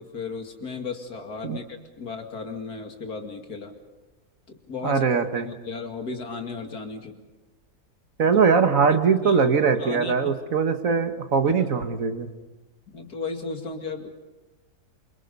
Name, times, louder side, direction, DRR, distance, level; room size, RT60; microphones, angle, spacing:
voice 1, 0.0-3.7 4.7-5.0 5.4-7.2 8.9-9.0 9.2-9.5 9.8-10.3 11.4-11.5 12.9-14.1, left 4 dB, 80° left, 4 dB, 2.9 m, -35 dB
voice 2, 4.8-5.5 8.2-12.3, right 5 dB, 60° right, 8 dB, 1.7 m, -21 dB
27.5 x 24.5 x 5.4 m, 1.2 s
omnidirectional pair, 1.6 m